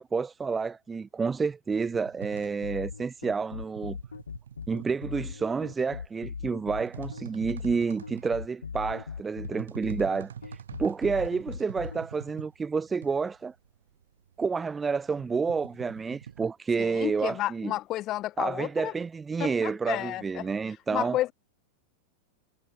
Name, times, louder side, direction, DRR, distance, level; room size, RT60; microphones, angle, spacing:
voice 1, 0.0-4.0 4.7-10.3 10.8-13.5 14.4-17.7 18.4-21.2, right 5 dB, 15° right, 0.8 m, -29 dB
sound 1, 1.8-16.5, right 8 dB, 65° right, 0.9 m, -46 dB
sound 2, 2.6-12.0, left 5 dB, 75° left, 1.9 m, -38 dB
voice 2, 16.8-18.9 19.4-20.5 20.9-21.3, left 15 dB, 35° left, 0.4 m, -31 dB
figure-of-eight pair, 90°, 0 cm